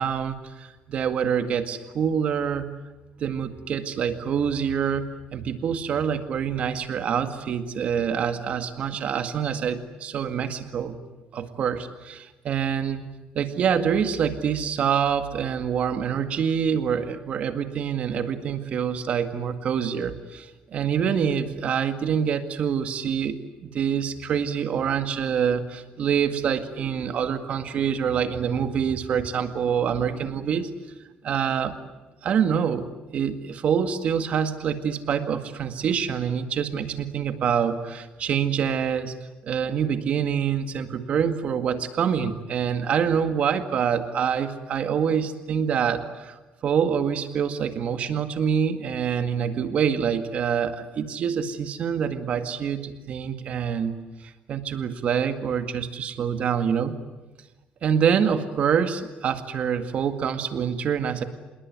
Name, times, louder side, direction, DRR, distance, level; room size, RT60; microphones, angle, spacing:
voice 1, 0.0-2.6 3.2-5.1 5.3-11.0 11.3-13.0 13.4-30.7 31.2-31.8 32.2-32.9 33.1-39.2 39.4-54.0 54.2-56.9 57.8-61.2, right 7 dB, 45° right, 9 dB, 2.0 m, -26 dB
27.0 x 21.5 x 9.5 m, 1.1 s
cardioid pair, 175°, 3 cm